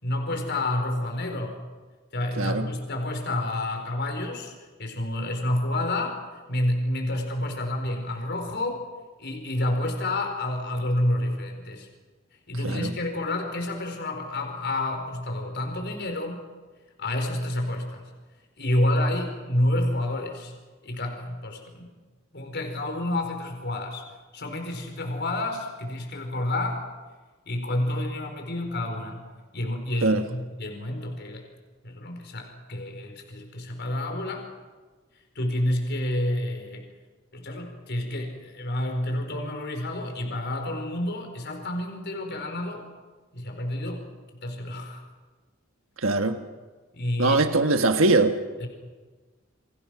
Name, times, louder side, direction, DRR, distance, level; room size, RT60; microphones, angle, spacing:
voice 1, 0.0-1.6 2.1-6.2 6.5-8.8 9.2-11.9 12.5-16.4 17.0-18.1 18.6-20.5 20.8-21.9 22.3-24.0 24.3-26.8 27.5-29.2 29.5-31.5 31.8-34.5 35.3-36.9 37.3-42.9 43.3-44.0 44.3-45.0 46.9-47.4 48.6-48.7, left 1 dB, 55° left, 4 dB, 4.4 m, -29 dB
voice 2, 46.0-46.4 47.2-48.3, right 3 dB, 75° right, 7 dB, 1.5 m, -21 dB
29.0 x 24.0 x 6.2 m, 1.3 s
head